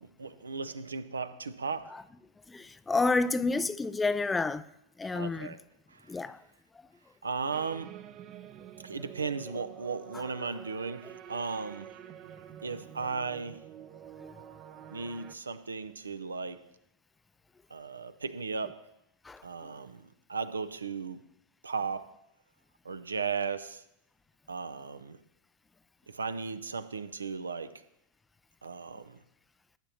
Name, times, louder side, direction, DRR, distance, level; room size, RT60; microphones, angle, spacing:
voice 1, 0.0-1.9 5.0-5.6 5.9-6.1 7.2-7.9 8.8-11.9 12.6-13.6 14.9-16.6 17.7-18.8 19.4-21.2 21.6-22.1 22.8-23.8 24.5-25.2 26.1-27.7 28.6-29.2, right 5 dB, 75° right, 0.6 m, -36 dB
voice 2, 2.5-4.6 5.0-5.5 6.1-6.4 14.2-14.3 19.3-19.4, left 3 dB, 10° left, 0.4 m, -29 dB
sound 1, 7.5-15.3, right 10 dB, 35° right, 0.6 m, -48 dB
19.0 x 8.8 x 2.9 m
figure-of-eight pair, 90°, 0 cm